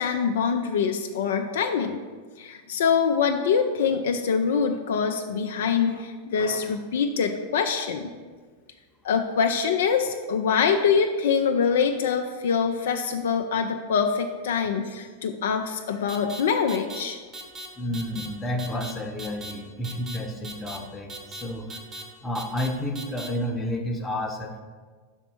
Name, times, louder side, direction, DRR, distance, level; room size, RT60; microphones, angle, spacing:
voice 1, 0.0-2.0 2.4-8.1 9.0-17.2, left 6 dB, 60° left, 5 dB, 0.4 m, -24 dB
sound 1, 16.1-16.4 16.7-17.0 17.3-17.7 17.9-18.3 18.6-18.9 19.2-19.5 19.8-20.2 20.4-20.8 21.1-21.4 21.7-22.0 22.4-22.7 23.0-23.3, right 2 dB, 30° right, 1.1 m, -38 dB
voice 2, 17.8-21.8 22.2-24.6, left 1 dB, 15° left, 2 dB, 0.8 m, -31 dB
5.9 x 4.4 x 6.0 m, 1.5 s
figure-of-eight pair, 90°, 0 cm